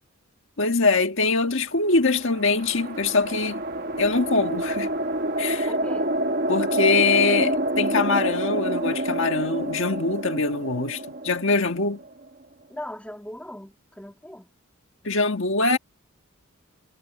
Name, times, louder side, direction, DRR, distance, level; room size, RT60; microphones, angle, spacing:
voice 1, 0.6-3.6 4.0-4.9 5.4-5.7 6.5-12.0 15.0-15.8, left 3 dB, 65° left, 1.6 m, -23 dB
sound 1, 1.9-12.3, right 1 dB, 45° right, 1.4 m, -28 dB
voice 2, 5.6-6.1 12.7-14.5, left 1 dB, 5° left, 3.2 m, -39 dB
head